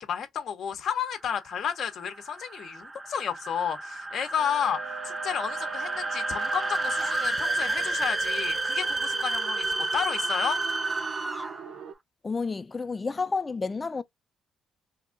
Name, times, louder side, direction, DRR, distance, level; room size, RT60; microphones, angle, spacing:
voice 1, 0.0-9.6 9.9-10.6, left 8 dB, 65° left, 0.7 m, -31 dB
sound 1, 1.1-11.7, right 2 dB, 20° right, 0.5 m, -31 dB
sound 2, 4.4-11.9, right 8 dB, 85° right, 0.6 m, -42 dB
voice 2, 12.2-14.0, left 4 dB, 30° left, 0.4 m, -30 dB
2.8 x 2.4 x 3.7 m
cardioid pair, 90°, 0 cm